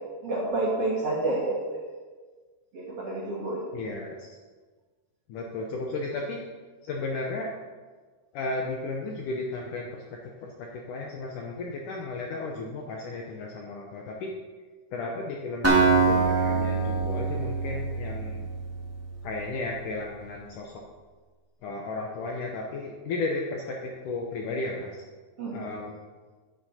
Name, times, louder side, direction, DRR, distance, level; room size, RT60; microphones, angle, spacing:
voice 1, 0.0-1.9 2.7-3.7 25.4-25.7, right 2 dB, 55° right, -4 dB, 1.8 m, -29 dB
voice 2, 3.7-4.2 5.3-6.4 6.8-7.5 8.3-14.3 14.9-18.5 19.2-20.8 21.6-25.0 25.5-26.0, left 3 dB, 75° left, 0 dB, 2.0 m, -34 dB
Acoustic guitar, 15.6-19.5, right 4 dB, 10° right, 0.6 m, -25 dB
10.5 x 9.5 x 4.3 m, 1.4 s
omnidirectional pair, 4.6 m